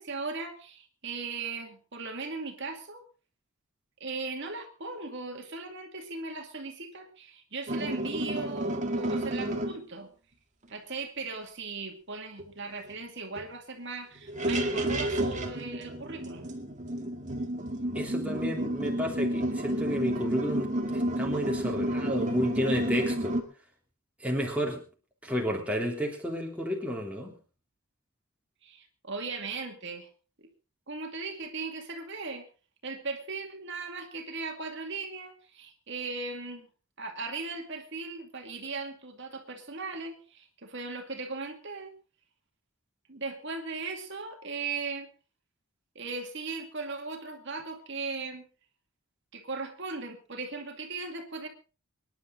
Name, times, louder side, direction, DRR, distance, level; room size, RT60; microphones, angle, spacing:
voice 1, 0.0-3.0 4.0-10.1 10.7-16.5 28.6-30.1 30.4-30.5 30.9-32.4 32.8-36.7 37.0-41.9 43.1-45.1 46.0-48.5 49.3-51.5, right 4 dB, 55° right, 4 dB, 2.3 m, -38 dB
sound 1, 7.7-9.8 12.4-12.5 12.8-12.9 13.4-13.5 14.2-23.4, right 1 dB, 35° right, 2.0 m, -31 dB
voice 2, 17.9-23.4 24.2-24.8 25.2-27.4, equal, 5° right, 0 dB, 3.3 m, -31 dB
25.0 x 10.5 x 3.9 m, 0.35 s
head